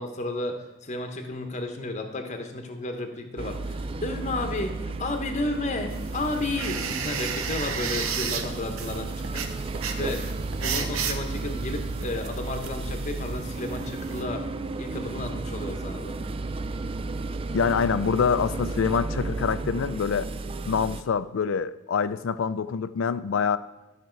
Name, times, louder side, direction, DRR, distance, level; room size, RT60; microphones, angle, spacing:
voice 1, 0.0-9.6 9.8-10.3 10.6-14.4 14.8-16.2, left 2 dB, 35° left, 5 dB, 1.0 m, -32 dB
sound 1, 3.4-21.0, right 3 dB, 25° right, 0.3 m, -33 dB
sound 2, 5.9-14.2, right 6 dB, 85° right, 0.9 m, -34 dB
voice 2, 17.5-20.3 20.7-23.6, left 6 dB, 65° left, 15 dB, 0.4 m, -25 dB
12.5 x 5.9 x 4.5 m, 1.1 s
head